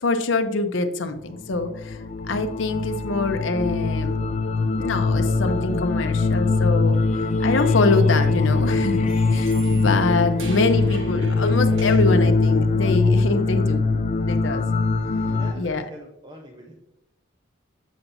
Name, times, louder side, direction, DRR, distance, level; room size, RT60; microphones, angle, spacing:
voice 1, 0.0-2.0 2.3-4.2 4.8-7.0 7.4-13.8 14.3-14.6 15.5-15.9, left 3 dB, 70° left, 7 dB, 0.7 m, -24 dB
sound 1, 1.4-15.5, left 3 dB, 35° left, 0.3 m, -22 dB
sound 2, 9.1-12.2, right 4 dB, 70° right, 1.3 m, -44 dB
voice 2, 15.1-16.7, right 1 dB, 20° right, 0 dB, 0.7 m, -43 dB
7.3 x 7.0 x 2.6 m, 0.87 s
head